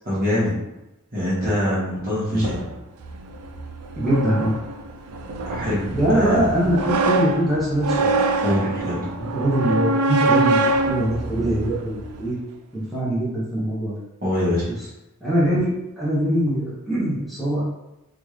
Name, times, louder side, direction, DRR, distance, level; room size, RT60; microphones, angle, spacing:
voice 1, 0.0-0.5 1.1-2.7 5.5-5.9 6.1-6.4 8.4-9.1 11.4-11.5 14.2-14.7, left 1 dB, 40° right, -7 dB, 1.3 m, -24 dB
sound 1, 2.3-12.3, right 2 dB, 85° right, 0.4 m, -25 dB
voice 2, 4.0-4.5 5.9-8.2 8.7-12.4 12.7-14.0 14.7-14.8 15.2-17.6, right 1 dB, ahead, -10 dB, 0.8 m, -23 dB
3.6 x 2.5 x 3.1 m, 0.96 s
head